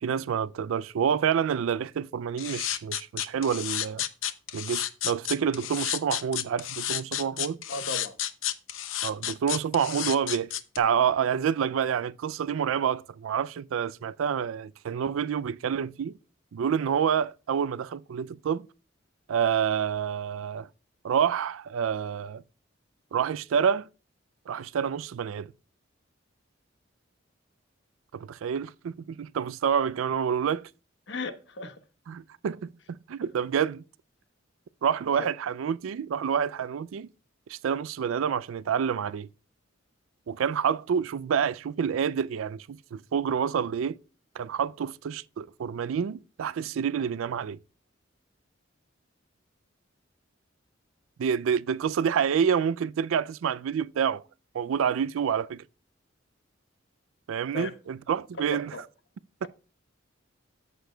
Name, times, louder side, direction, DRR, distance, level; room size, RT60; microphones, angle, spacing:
voice 1, 0.0-4.1 4.5-7.6 9.0-16.2 16.5-18.6 19.3-20.7 21.0-22.4 23.1-23.9 24.5-25.5 28.1-30.7 32.1-33.8 34.8-37.1 37.5-39.3 40.3-44.0 44.4-47.6 51.2-54.2 54.5-55.6 57.3-58.7 59.4-59.5, right 7 dB, 85° right, 0.3 m, -28 dB
sound 1, 2.4-10.8, left 12 dB, 80° left, 0.6 m, -31 dB
voice 2, 7.7-8.2 31.1-31.8 35.1-35.3 57.5-57.7 58.4-58.8, left 2 dB, 60° left, 1.0 m, -35 dB
14.0 x 6.6 x 2.2 m
head